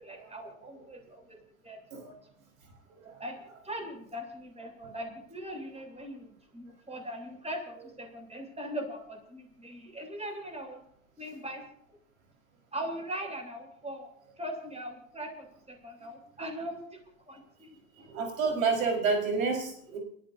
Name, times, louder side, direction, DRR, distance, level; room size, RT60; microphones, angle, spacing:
voice 1, 0.0-1.4 1.6-2.2 3.2-3.4 3.6-10.8 11.2-11.6 12.7-14.1 14.4-17.0 17.3-18.1, equal, 15° right, 3 dB, 7.5 m, -40 dB
voice 2, 18.1-20.0, right 4 dB, 85° right, 1 dB, 5.2 m, -29 dB
30.0 x 14.5 x 2.8 m, 0.70 s
hypercardioid pair, 80°, 40 cm